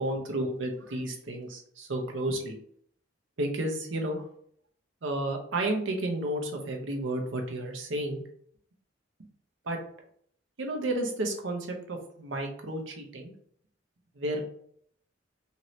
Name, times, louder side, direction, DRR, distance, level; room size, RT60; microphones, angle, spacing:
voice 1, 0.0-2.6 3.4-4.2 5.0-8.2 9.6-9.8 10.6-13.3 14.2-14.4, right 1 dB, 85° right, 2 dB, 0.7 m, -32 dB
2.9 x 2.7 x 3.0 m, 0.64 s
head